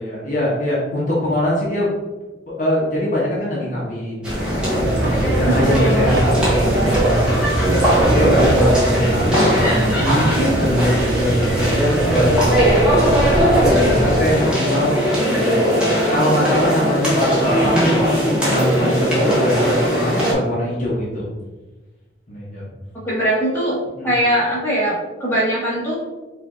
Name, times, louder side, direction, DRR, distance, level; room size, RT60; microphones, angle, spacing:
voice 1, 0.0-1.9 2.5-4.9 5.3-7.5 7.9-12.6 13.1-21.3 22.3-22.7 24.0-24.1, left 1 dB, 40° left, -6 dB, 1.1 m, -22 dB
sound 1, 4.2-20.3, equal, 5° right, 1.2 m, -19 dB
sound 2, 4.7-14.3, right 2 dB, 70° right, 0.6 m, -23 dB
voice 2, 5.5-6.0 13.9-15.1 23.0-25.9, right 1 dB, 10° left, -8 dB, 1.4 m, -22 dB
5.0 x 2.7 x 3.7 m, 1.2 s
head